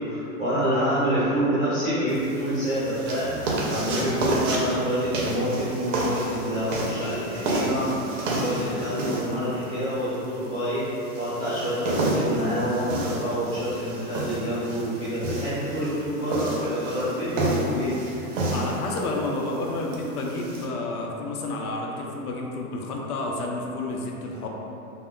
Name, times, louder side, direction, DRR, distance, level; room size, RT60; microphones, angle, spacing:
voice 1, 0.0-7.9 8.3-10.8 11.1-18.3, equal, 5° right, -28 dB, 0.4 m, -27 dB
sound 1, 2.1-20.6, right 1 dB, 60° right, 0.5 m, -30 dB
voice 2, 18.5-24.5, left 2 dB, 85° left, 0 dB, 0.6 m, -30 dB
2.1 x 2.0 x 3.5 m, 2.9 s
supercardioid pair, 175°, 44 cm